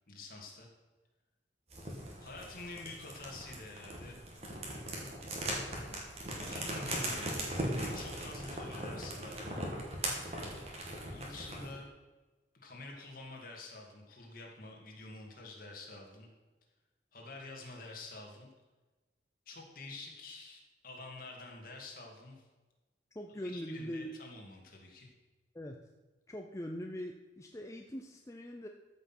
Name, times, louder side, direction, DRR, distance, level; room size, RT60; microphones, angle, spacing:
voice 1, 0.1-0.7 2.2-4.2 5.7-9.5 11.1-11.9 12.6-16.3 17.1-18.5 19.5-22.5 23.4-25.1, left 2 dB, 50° left, 0 dB, 2.3 m, -48 dB
sound 1, 1.7-11.7, right 1 dB, 35° right, 2.3 m, -39 dB
voice 2, 23.1-24.2 25.5-25.9 26.3-28.7, equal, 15° left, 2 dB, 0.6 m, -42 dB
13.5 x 5.9 x 6.1 m, 1.2 s
head